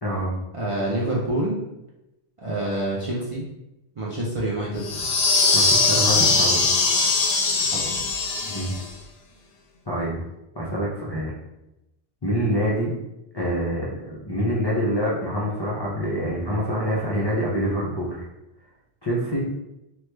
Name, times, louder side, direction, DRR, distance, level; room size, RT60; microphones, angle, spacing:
voice 1, 0.0-0.3 5.5-6.7 8.5-8.8 9.9-10.2 10.5-11.3 12.2-12.9 13.3-18.2 19.0-19.4, equal, 35° left, -7 dB, 0.4 m, -26 dB
voice 2, 0.5-1.6 2.4-3.4 4.0-5.1 7.7-7.9, right 1 dB, 45° right, -5 dB, 0.4 m, -27 dB
sound 1, 4.8-8.9, left 3 dB, 75° left, 0.8 m, -21 dB
3.0 x 2.3 x 3.2 m, 0.91 s
omnidirectional pair, 1.1 m